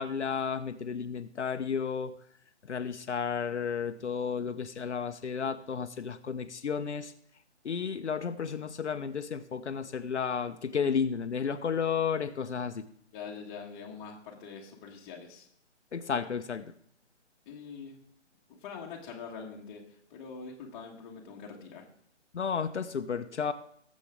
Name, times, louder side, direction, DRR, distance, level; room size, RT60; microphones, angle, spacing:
voice 1, 0.0-2.1 2.6-7.1 7.6-12.8 15.9-16.7 22.3-23.5, left 6 dB, 70° left, 8 dB, 0.9 m, -32 dB
voice 2, 13.1-15.5 17.4-18.0 18.5-21.9, left 5 dB, 15° left, 0 dB, 1.6 m, -44 dB
18.5 x 7.6 x 3.6 m, 0.67 s
hypercardioid pair, 155°, 36 cm